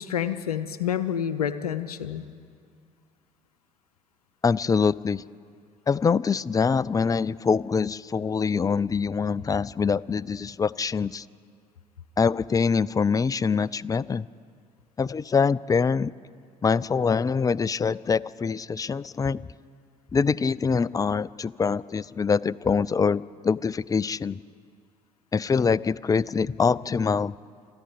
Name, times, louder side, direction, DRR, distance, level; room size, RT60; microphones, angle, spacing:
voice 1, 0.0-2.2, left 9 dB, 80° left, 12 dB, 0.7 m, -28 dB
voice 2, 4.4-5.2 5.9-11.2 12.2-14.3 15.0-16.1 16.6-19.4 20.1-24.4 25.3-27.3, left 5 dB, 20° left, 22 dB, 0.4 m, -24 dB
28.0 x 11.5 x 9.4 m, 2.2 s
figure-of-eight pair, 55°, 19 cm